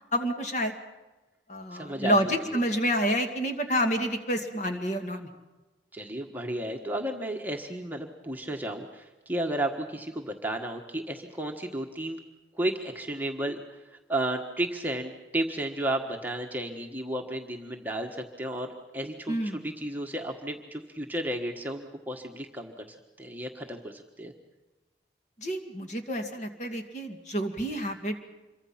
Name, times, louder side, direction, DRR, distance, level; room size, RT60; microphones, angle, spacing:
voice 1, 0.1-0.8 1.5-5.3 19.3-19.7 25.4-28.2, equal, 40° left, 5 dB, 2.3 m, -28 dB
voice 2, 1.8-2.1 2.5-2.6 5.9-12.2 12.5-22.8 23.2-24.3, right 1 dB, 10° right, 2 dB, 1.4 m, -33 dB
26.5 x 23.5 x 5.8 m, 1.1 s
head